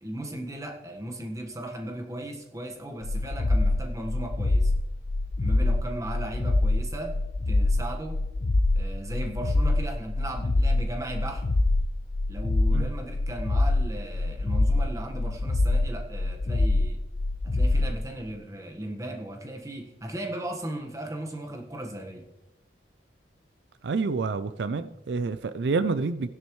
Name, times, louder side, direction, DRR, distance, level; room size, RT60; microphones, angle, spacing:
voice 1, 0.0-4.7 5.4-7.2 7.5-8.2 8.7-11.4 12.3-17.0 17.4-22.2, right 1 dB, 20° right, 1.4 m, -36 dB
sound 1, 3.0-18.0, left 2 dB, 70° left, 0.7 m, -25 dB
voice 2, 23.8-26.3, right 4 dB, 75° right, 0.4 m, -28 dB
16.0 x 10.5 x 3.2 m
head